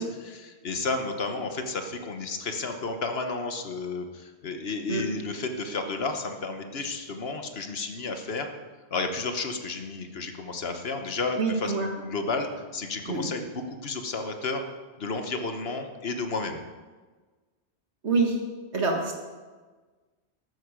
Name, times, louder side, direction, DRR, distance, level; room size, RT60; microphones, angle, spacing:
voice 1, 0.0-8.5 8.9-14.7 15.0-16.6, left 3 dB, 65° left, 6 dB, 1.3 m, -32 dB
voice 2, 11.4-11.9 13.1-13.3 18.0-18.4 18.7-19.2, right 4 dB, 80° right, 2 dB, 2.0 m, -26 dB
13.0 x 9.4 x 5.1 m, 1.4 s
omnidirectional pair, 1.1 m